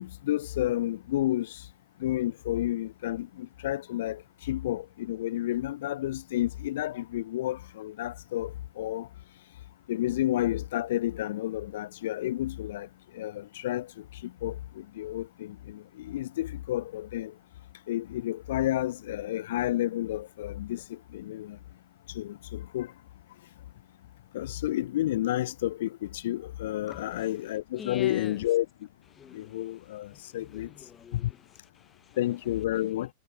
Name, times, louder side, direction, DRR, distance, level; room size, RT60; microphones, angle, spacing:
voice 1, 0.0-1.6 2.0-9.1 9.9-12.9 13.1-17.3 17.9-21.6 22.1-22.9 24.3-28.7 29.3-30.7 31.1-31.3 32.2-33.1, left 14 dB, 55° left, 0.9 m, -31 dB
voice 2, 26.9-27.4 27.7-28.5 29.1-32.9, left 7 dB, 20° left, 2.9 m, -48 dB
figure-of-eight pair, 90°, 0 cm